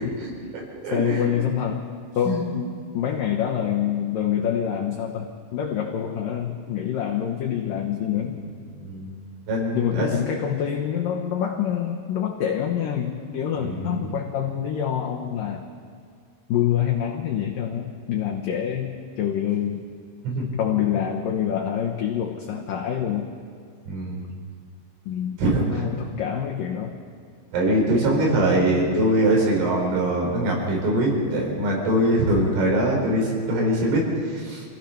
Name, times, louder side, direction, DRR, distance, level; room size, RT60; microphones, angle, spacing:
voice 1, 0.0-1.2 2.2-2.4 8.8-9.1 9.5-10.1 13.6-14.0 20.2-20.5 23.9-24.2 25.4-25.8 27.5-34.6, right 1 dB, 85° right, -2 dB, 7.2 m, -23 dB
voice 2, 0.9-1.8 2.2-8.4 9.7-15.6 16.5-19.8 20.6-23.3 25.1-25.4 25.7-27.0, left 9 dB, 85° left, 1 dB, 1.9 m, -26 dB
27.5 x 17.0 x 5.8 m, 2.2 s
omnidirectional pair, 5.7 m